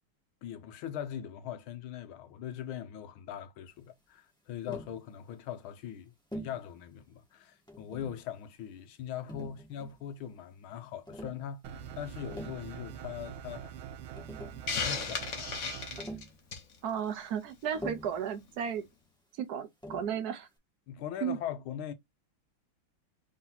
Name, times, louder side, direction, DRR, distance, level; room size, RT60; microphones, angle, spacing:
voice 1, 0.4-13.8 14.7-16.0 20.9-21.9, left 10 dB, 85° left, 1.6 m, -41 dB
Tap, 4.7-5.0 6.3-6.6 7.7-8.2 9.3-10.1 11.1-11.4 12.1-12.6 13.8-13.9 14.1-14.7 16.0-16.4 17.7-18.2 19.8-20.2, equal, 5° left, 0.7 m, -43 dB
sound 1, 11.6-16.0, right 8 dB, 90° right, 1.5 m, -44 dB
Hiss, 14.7-16.7, left 5 dB, 50° left, 1.0 m, -34 dB
voice 2, 16.8-18.9 19.4-20.5 21.2-21.4, right 8 dB, 65° right, 1.0 m, -34 dB
4.2 x 2.8 x 3.8 m
omnidirectional pair, 2.2 m